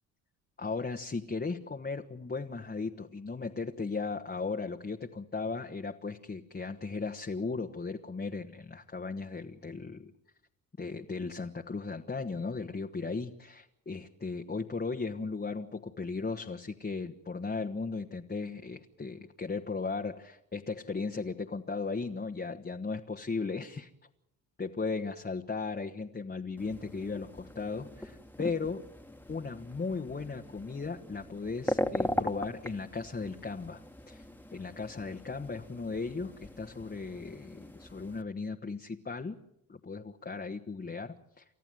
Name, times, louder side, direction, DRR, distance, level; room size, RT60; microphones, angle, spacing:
voice 1, 0.6-10.1 10.8-23.9 24.6-28.9 29.3-34.2 34.5-39.4 39.7-41.4, left 4 dB, 20° left, 3 dB, 1.4 m, -36 dB
sound 1, 26.6-38.2, left 1 dB, 5° left, 1.8 m, -39 dB
29.5 x 14.0 x 7.8 m, 0.83 s
hypercardioid pair, 55°, 44 cm